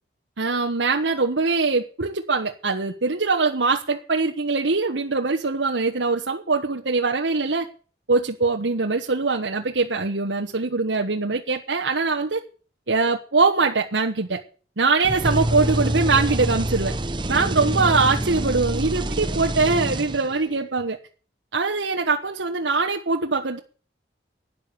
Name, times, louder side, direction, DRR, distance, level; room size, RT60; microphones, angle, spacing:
voice 1, 0.4-7.7 8.1-12.4 12.9-14.4 14.8-16.9 17.3-21.0 21.5-23.6, right 4 dB, 85° right, 1.2 m, -22 dB
sound 1, 15.0-20.5, right 1 dB, 25° right, 0.8 m, -26 dB
12.0 x 9.8 x 6.8 m
head